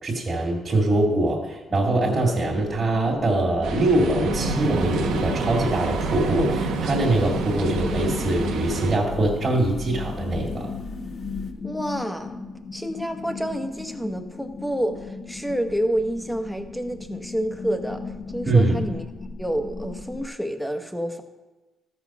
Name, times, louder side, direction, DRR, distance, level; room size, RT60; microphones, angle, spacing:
voice 1, 0.0-10.7 18.5-18.8, right 2 dB, 35° right, -4 dB, 2.1 m, -23 dB
sound 1, 1.7-20.3, left 5 dB, 35° left, 1.0 m, -37 dB
sound 2, 3.6-9.0, right 4 dB, 85° right, 1.2 m, -28 dB
sound 3, 4.3-11.5, left 2 dB, 55° left, 1.5 m, -38 dB
voice 2, 11.6-12.4 12.7-19.0 19.4-21.2, equal, ahead, 6 dB, 1.1 m, -28 dB
13.5 x 6.2 x 6.0 m, 1.1 s
cardioid pair, 90°, 0 cm